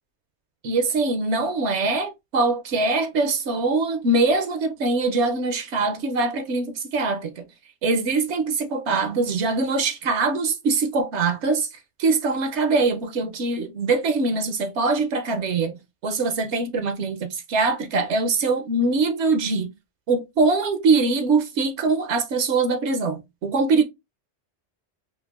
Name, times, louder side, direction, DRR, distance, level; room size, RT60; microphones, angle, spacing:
voice 1, 0.6-7.5 7.8-11.7 12.0-15.7 16.0-19.7 20.1-23.8, right 3 dB, 75° right, 0.9 m, -23 dB
4.5 x 2.4 x 2.4 m
omnidirectional pair, 1.2 m